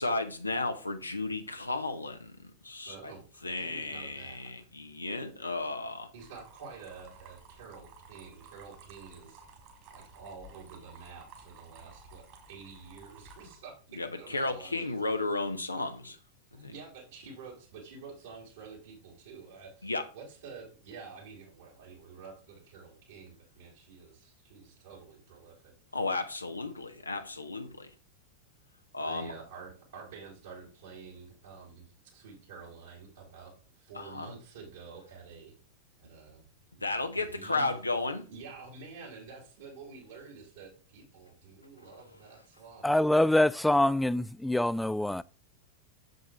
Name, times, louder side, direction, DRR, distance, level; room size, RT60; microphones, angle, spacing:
voice 1, 0.0-3.1 3.4-6.1 14.0-16.2 16.6-16.7 19.8-20.1 25.9-27.9 28.9-29.3 33.9-34.3 36.8-38.3, left 2 dB, 80° left, 0.8 m, -33 dB
voice 2, 2.9-4.5 6.1-9.4 9.9-14.9 16.5-25.7 29.0-35.5 36.0-36.4 36.7-37.8 38.3-43.0, right 5 dB, 60° right, 4.1 m, -49 dB
sound 1, 6.2-13.5, right 4 dB, 45° right, 3.0 m, -54 dB
voice 3, 42.8-45.2, left 1 dB, 5° left, 0.3 m, -25 dB
7.8 x 7.4 x 3.5 m
figure-of-eight pair, 90°, 0 cm